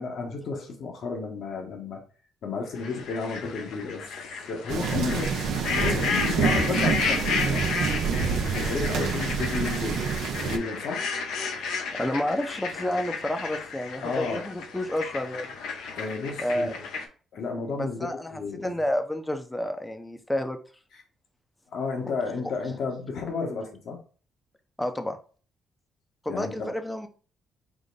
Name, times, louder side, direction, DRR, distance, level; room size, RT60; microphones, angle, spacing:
voice 1, 0.0-2.0 2.4-4.0 4.5-7.9 8.5-10.0 10.4-11.0 14.0-14.5 15.9-16.8 17.3-18.8 21.7-24.0 26.3-26.8, left 4 dB, 70° left, 2 dB, 1.1 m, -32 dB
sound 1, 2.7-17.0, left 5 dB, 85° left, 0.7 m, -32 dB
sound 2, 4.7-10.6, right 6 dB, 80° right, 0.6 m, -27 dB
voice 2, 12.0-15.5 16.4-16.8 17.7-20.6 24.8-25.2 26.2-27.1, left 1 dB, 10° left, 7 dB, 0.5 m, -30 dB
5.0 x 2.1 x 3.9 m, 0.39 s
cardioid pair, 90°, 0 cm